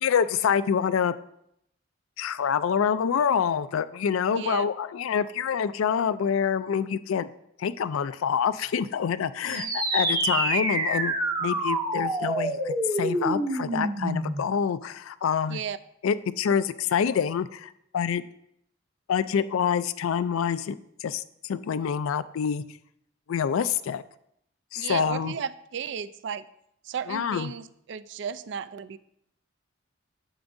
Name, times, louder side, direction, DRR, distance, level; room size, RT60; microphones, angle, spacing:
voice 1, 0.0-1.1 2.2-7.3 7.6-11.1 11.4-15.6 16.0-18.2 19.1-22.6 23.3-24.0 24.7-25.3 27.1-27.5, left 7 dB, 80° left, 15 dB, 0.4 m, -26 dB
voice 2, 4.3-4.7 9.4-9.8 15.4-15.8 24.8-26.5 26.8-29.0, right 7 dB, 55° right, 14 dB, 0.3 m, -34 dB
sound 1, 9.5-14.5, right 2 dB, 15° right, 0.6 m, -27 dB
8.9 x 7.0 x 2.6 m, 0.75 s
head